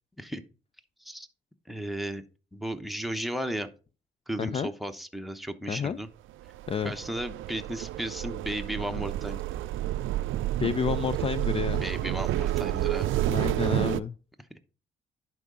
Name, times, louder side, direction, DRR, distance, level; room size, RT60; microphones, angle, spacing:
voice 1, 1.7-2.2 2.5-3.7 4.3-6.1 6.8-9.4 11.8-13.1, equal, ahead, 0.9 m, -34 dB
voice 2, 4.4-4.7 5.7-6.0 6.7-6.9 10.6-11.8 13.3-14.2, left 6 dB, 30° left, 0.4 m, -29 dB
sound 1, 6.4-14.0, right 14 dB, 80° right, 0.5 m, -30 dB
10.5 x 4.8 x 3.8 m
cardioid pair, 90°, 20 cm